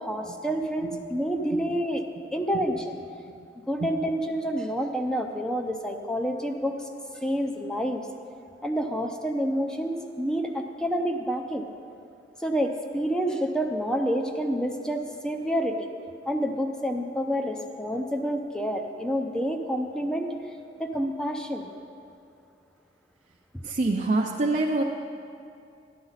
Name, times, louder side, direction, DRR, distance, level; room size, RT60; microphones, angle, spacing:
voice 1, 0.0-2.0 2.3-3.0 3.7-6.8 7.2-8.1 8.6-11.7 12.4-15.9 16.3-20.3 20.8-21.7, equal, 5° left, 4 dB, 0.6 m, -28 dB
voice 2, 23.6-24.8, right 2 dB, 45° right, -1 dB, 0.6 m, -25 dB
13.0 x 11.0 x 4.1 m, 2.6 s
head